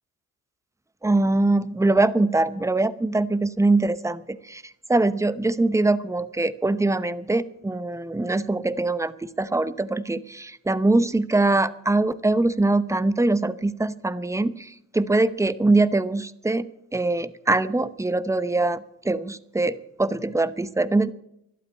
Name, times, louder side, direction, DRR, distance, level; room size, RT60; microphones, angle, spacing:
voice 1, 1.0-21.1, right 2 dB, 10° right, 16 dB, 0.8 m, -23 dB
12.5 x 12.0 x 8.4 m, 0.79 s
cardioid pair, 90°, 30 cm